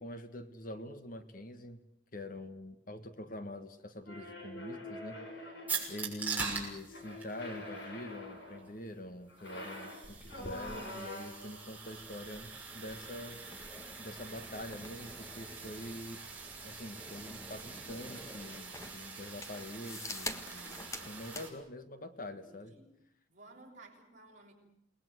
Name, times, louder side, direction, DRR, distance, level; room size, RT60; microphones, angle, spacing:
voice 1, 0.0-1.8 2.1-5.2 5.9-13.4 14.0-16.2 16.6-22.7, left 1 dB, 45° left, 9 dB, 1.6 m, -45 dB
sound 1, 4.0-5.9 6.9-8.7 9.3-11.6, left 1 dB, 65° left, 6.2 m, -45 dB
sound 2, 5.7-21.5, right 5 dB, 10° right, 6.2 m, -44 dB
sound 3, 10.0-21.5, left 2 dB, 15° left, 1.5 m, -48 dB
voice 2, 22.3-22.9 23.3-24.5, right 2 dB, 40° right, -1 dB, 6.8 m, -56 dB
28.5 x 20.0 x 7.8 m, 0.75 s
head